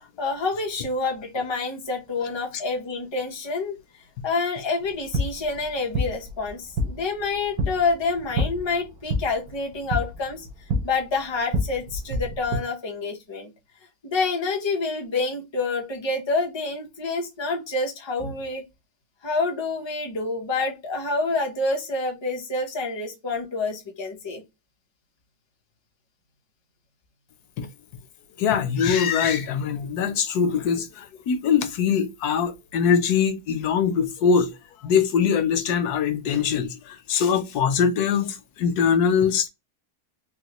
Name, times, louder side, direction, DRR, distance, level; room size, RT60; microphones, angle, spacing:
voice 1, 0.0-3.8 4.2-10.5 10.8-13.5 14.0-18.6 19.2-24.4, left 3 dB, 25° left, 0.7 m, -27 dB
sound 1, 4.8-12.6, equal, 90° right, 1.3 m, -29 dB
voice 2, 28.4-34.5 34.8-39.5, left 7 dB, 90° left, 1.2 m, -22 dB
4.0 x 2.3 x 2.9 m
omnidirectional pair, 1.6 m